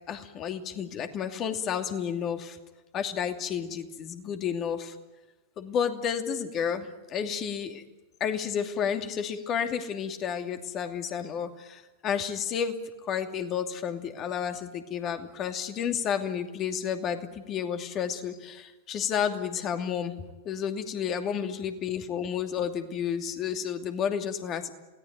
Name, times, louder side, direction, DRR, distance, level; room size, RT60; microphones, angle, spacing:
voice 1, 0.1-2.6 2.9-4.9 5.6-7.8 8.2-12.8 13.1-20.2 20.4-24.7, left 8 dB, 35° left, 6 dB, 2.7 m, -31 dB
27.5 x 18.0 x 9.4 m, 1.1 s
figure-of-eight pair, 95°, 0 cm